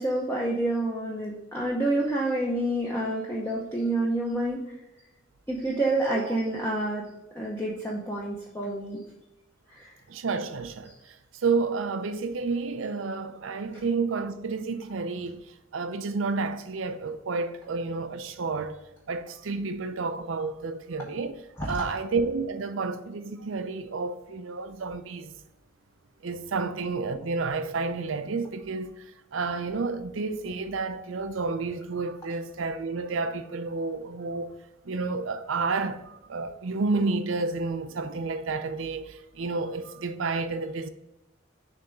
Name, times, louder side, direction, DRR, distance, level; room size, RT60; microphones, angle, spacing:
voice 1, 0.0-4.7 5.5-7.1 7.3-9.0 9.7-10.0 10.8-10.9 13.7-13.9 21.6-22.0, right 1 dB, 10° left, 0.7 m, -28 dB
voice 2, 10.1-18.8 19.1-21.4 21.7-25.4 26.2-34.5 34.8-40.9, right 4 dB, 90° right, 0.5 m, -30 dB
6.7 x 3.5 x 5.2 m
head